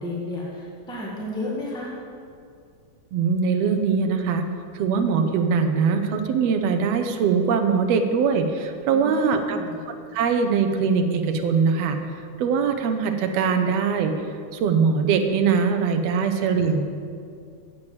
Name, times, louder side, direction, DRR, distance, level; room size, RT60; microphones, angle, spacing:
voice 1, 0.0-2.0 8.9-9.8 16.3-16.7, left 2 dB, 5° left, -5 dB, 0.4 m, -33 dB
voice 2, 3.1-4.5 4.7-9.6 10.1-12.0 12.4-14.1 14.5-16.8, right 5 dB, 75° right, 6 dB, 1.6 m, -22 dB
7.6 x 7.5 x 7.8 m, 2.4 s
omnidirectional pair, 3.4 m